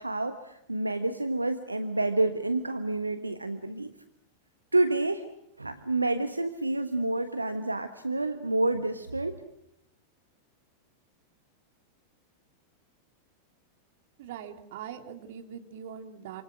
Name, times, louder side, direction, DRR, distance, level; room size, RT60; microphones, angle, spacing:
voice 1, 0.0-3.9 4.7-5.2 5.6-9.4, right 2 dB, 85° right, 9 dB, 1.3 m, -28 dB
voice 2, 14.2-16.4, right 9 dB, 55° right, 6 dB, 3.0 m, -42 dB
28.0 x 27.5 x 6.4 m, 0.78 s
figure-of-eight pair, 90°, 0 cm